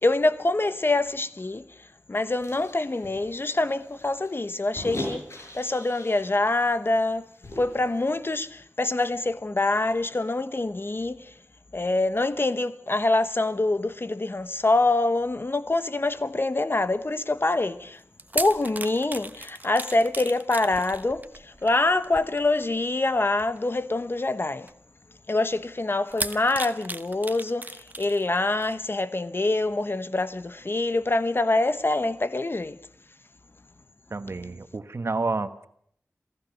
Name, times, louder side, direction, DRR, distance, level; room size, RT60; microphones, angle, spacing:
voice 1, 0.0-1.7 2.1-7.3 7.6-11.3 11.7-18.0 18.3-24.7 25.3-32.8, left 2 dB, 50° left, 1.0 m, -25 dB
sound 1, 2.4-6.3 6.7-6.8 7.1-8.1, left 1 dB, 70° left, 7.0 m, -39 dB
sound 2, 18.0-22.8 23.6-23.8 24.7-24.8 26.1-28.3 28.6-28.8, right 2 dB, 35° right, 1.1 m, -36 dB
voice 2, 34.1-35.7, right 3 dB, 60° right, 1.3 m, -30 dB
27.0 x 16.0 x 6.5 m
cardioid pair, 40°, 5 cm